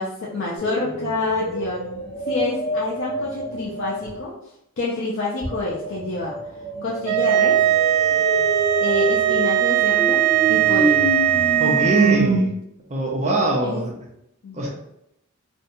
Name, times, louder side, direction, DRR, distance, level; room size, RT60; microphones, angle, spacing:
voice 1, 0.0-1.8 2.3-4.4 4.8-6.4 6.8-7.6 8.8-11.1 13.6-13.8 14.4-14.7, left 2 dB, 55° left, -5 dB, 0.4 m, -28 dB
sound 1, 0.6-4.2 5.4-12.4, right 1 dB, 5° right, 1.0 m, -27 dB
sound 2, 7.0-12.2, right 12 dB, 90° right, 0.3 m, -19 dB
voice 2, 11.6-12.5 12.9-13.9 14.5-14.7, right 2 dB, 30° right, -2 dB, 0.5 m, -22 dB
2.7 x 2.1 x 2.6 m, 0.79 s
head